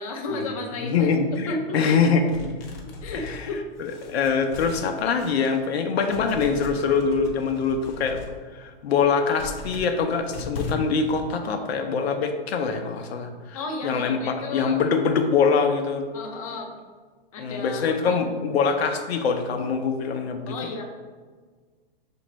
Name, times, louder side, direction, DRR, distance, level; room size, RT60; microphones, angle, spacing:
voice 1, 0.0-2.0 2.8-3.6 13.5-14.9 16.1-16.7 17.3-18.4 20.5-20.8, left 2 dB, 35° left, 2 dB, 0.5 m, -33 dB
voice 2, 0.8-2.5 3.1-3.5 3.8-8.2 8.5-13.6 13.8-16.0 17.4-20.5, left 5 dB, 85° left, 5 dB, 0.7 m, -24 dB
sound 1, 2.3-5.7 6.0-8.4 8.8-11.2, left 4 dB, 65° left, 1.0 m, -38 dB
6.2 x 2.6 x 3.0 m, 1.5 s
supercardioid pair, 175°, 31 cm